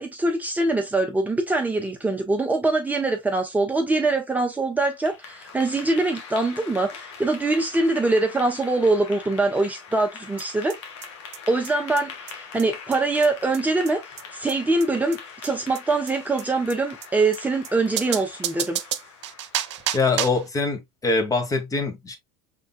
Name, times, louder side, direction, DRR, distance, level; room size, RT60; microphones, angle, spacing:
voice 1, 0.0-10.8 11.5-14.0 14.3-18.8, right 2 dB, 10° right, 0.9 m, -23 dB
Clapping / Applause, 4.8-20.1, left 6 dB, 75° left, 1.6 m, -42 dB
sound 1, 10.4-10.5 10.7-10.8 11.0-11.1 11.3-11.4 11.6-11.7 12.0-12.1 12.3-12.4 12.6-12.7 12.9-13.0 13.2-13.3 13.5-13.6 13.9-14.0 14.2-14.3 14.5-14.6 14.8-14.9 15.1-15.2 15.4-15.5 15.7-15.8 16.1-16.2 16.4-16.5 16.7-16.8 17.0-17.1 17.3-17.4 17.6-17.7 18.0-20.5, right 11 dB, 75° right, 0.7 m, -30 dB
voice 2, 19.9-22.2, left 3 dB, 20° left, 1.7 m, -24 dB
5.7 x 3.6 x 2.3 m
hypercardioid pair, 85°, 15 cm